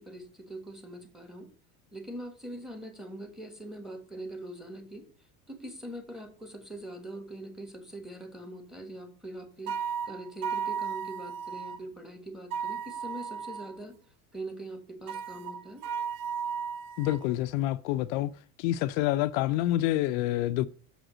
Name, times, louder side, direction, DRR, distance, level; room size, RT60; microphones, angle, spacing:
voice 1, 0.0-1.5 1.9-5.0 5.5-9.7 10.0-14.0 14.3-15.8, right 1 dB, ahead, 1.5 m, -42 dB
sound 1, 9.7-11.8 12.5-13.8 15.1-17.3, right 7 dB, 85° right, 1.0 m, -35 dB
voice 2, 17.0-18.3 18.6-20.7, left 14 dB, 70° left, 0.6 m, -27 dB
7.2 x 5.0 x 6.1 m
supercardioid pair, 125°, 42 cm